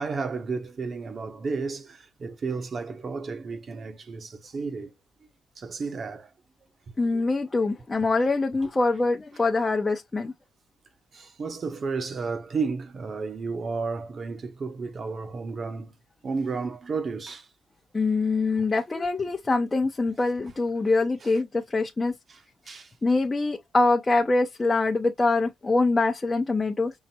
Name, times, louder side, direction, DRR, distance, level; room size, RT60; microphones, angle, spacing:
voice 1, 0.0-4.9 5.6-6.3 7.1-7.3 8.6-8.7 11.1-15.9 16.2-17.5 21.2-21.3 22.3-22.9, right 4 dB, 45° right, 0.9 m, -32 dB
voice 2, 7.0-10.3 17.9-22.1 23.0-26.9, left 3 dB, 25° left, 0.7 m, -24 dB
5.6 x 2.1 x 4.2 m
cardioid pair, 90°, 0 cm